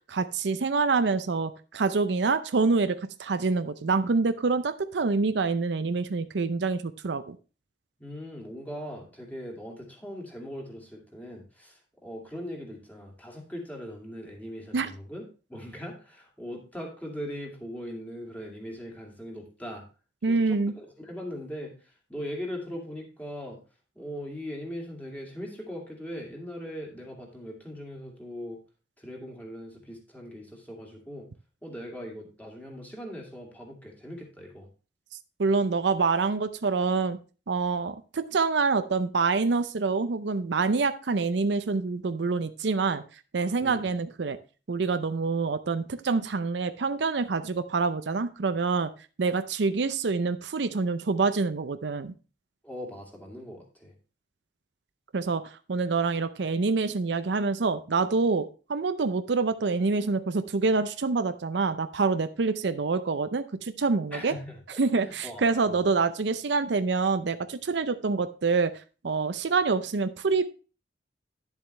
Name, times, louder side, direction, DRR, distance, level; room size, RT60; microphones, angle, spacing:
voice 1, 0.1-7.4 14.7-14.9 20.2-20.7 35.4-37.2 37.5-43.0 43.3-44.4 44.7-48.9 49.2-52.1 55.1-64.3 64.8-68.7 69.0-70.5, right 4 dB, 70° right, 11 dB, 0.6 m, -26 dB
voice 2, 8.0-15.2 15.5-19.8 20.3-23.6 24.0-28.6 29.0-31.3 31.6-34.7 43.6-43.9 52.6-53.9 64.1-64.6 65.0-65.8, equal, 10° left, 0 dB, 2.4 m, -40 dB
10.5 x 7.2 x 3.3 m, 0.34 s
head